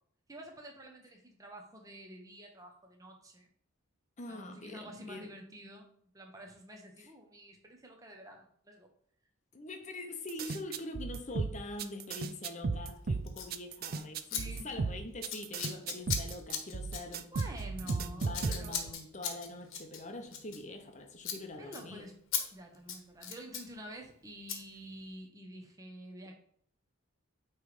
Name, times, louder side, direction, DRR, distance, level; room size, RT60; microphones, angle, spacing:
voice 1, 0.3-3.5 4.3-5.9 6.1-8.9 14.3-14.7 17.3-19.0 21.6-22.2 22.5-26.3, right 1 dB, 15° right, 0.9 m, -49 dB
voice 2, 4.2-5.3 9.5-17.3 17.8-22.0, left 2 dB, 35° left, 0.8 m, -44 dB
sound 1, 10.3-18.9, right 4 dB, 45° right, 0.4 m, -35 dB
Scissors, 13.3-13.5 14.3-14.4 14.7-14.9 15.3-20.9 21.2-21.4 21.7-21.8 22.3-22.4 22.7-23.7 24.5-24.6, left 7 dB, 75° left, 1.2 m, -38 dB
8.9 x 3.3 x 4.9 m
head